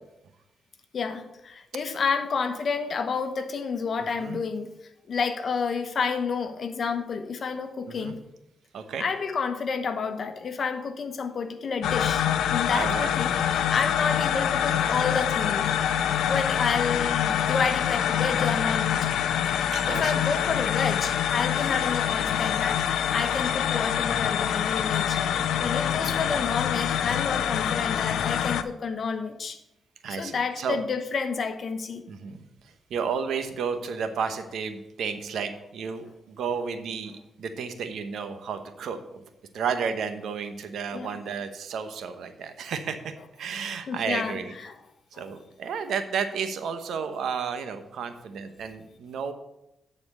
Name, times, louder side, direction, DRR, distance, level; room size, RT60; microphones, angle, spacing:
voice 1, 0.9-4.7 5.1-8.2 9.0-12.2 12.5-15.8 16.3-19.1 19.5-22.8 23.1-25.2 25.6-29.6 30.1-32.0 40.9-41.2 43.9-44.8 45.1-45.3, left 5 dB, 55° left, 9 dB, 1.0 m, -30 dB
sound 1, 11.8-28.6, left 9 dB, 90° left, 0.5 m, -25 dB
voice 2, 12.7-13.1 19.7-20.2 30.0-30.8 32.1-39.2 39.5-43.1 43.4-44.5 45.1-49.3, right 6 dB, 80° right, 9 dB, 0.9 m, -32 dB
9.9 x 4.3 x 6.5 m, 0.87 s
cardioid pair, 80°, 0 cm